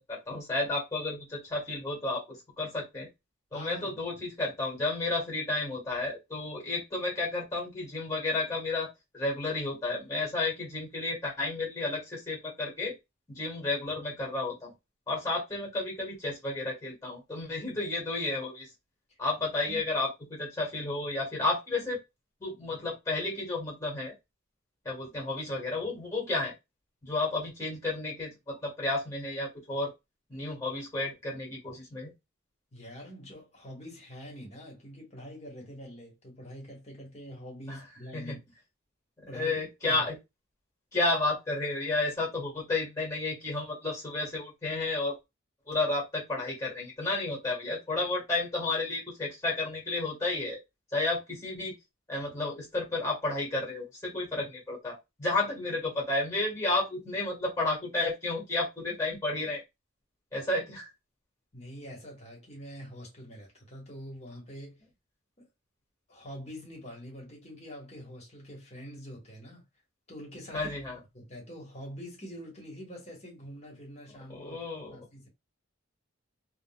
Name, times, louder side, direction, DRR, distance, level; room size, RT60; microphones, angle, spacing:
voice 1, 0.1-3.1 3.5-12.9 13.3-14.7 15.1-18.7 19.2-22.0 22.4-24.1 24.8-26.5 27.0-29.9 30.3-32.1 37.7-37.8 38.1-38.4 39.2-40.2 40.9-45.2 45.7-50.6 50.9-51.7 52.1-59.6 60.3-60.9 70.5-71.0 74.3-75.1, left 2 dB, 15° left, 1.5 m, -32 dB
voice 2, 3.5-4.1 19.7-19.9 32.7-38.4 39.3-40.0 61.5-64.8 65.4-65.5 66.1-69.6 70.1-70.7 71.1-74.6 74.9-75.3, equal, 35° left, 1.3 m, -45 dB
3.7 x 2.2 x 2.3 m
head